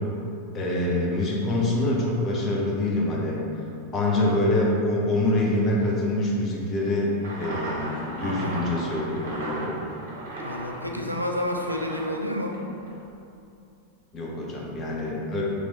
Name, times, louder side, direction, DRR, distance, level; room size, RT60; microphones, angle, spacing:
voice 1, 0.5-3.4 3.9-9.7 14.1-15.4, left 1 dB, 30° left, -3 dB, 0.8 m, -25 dB
voice 2, 4.1-4.4 8.2-8.6 10.4-12.6, left 1 dB, 85° right, 1 dB, 0.3 m, -30 dB
sound 1, 7.2-13.0, right 1 dB, 60° right, 0.9 m, -36 dB
3.1 x 3.1 x 3.9 m, 2.7 s
figure-of-eight pair, 90°, 0 cm